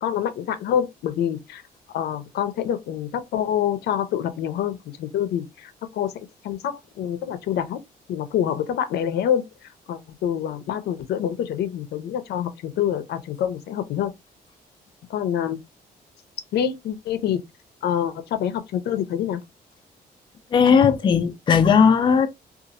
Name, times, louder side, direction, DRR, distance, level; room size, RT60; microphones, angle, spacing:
voice 1, 0.0-1.6 1.9-6.1 6.4-7.8 8.1-9.5 9.9-14.1 15.1-15.6 16.5-17.4 17.8-19.4, left 9 dB, 85° left, 0.5 m, -26 dB
voice 2, 20.5-22.3, left 6 dB, 30° left, 0.4 m, -17 dB
2.8 x 2.4 x 2.5 m
cardioid pair, 140°, 16 cm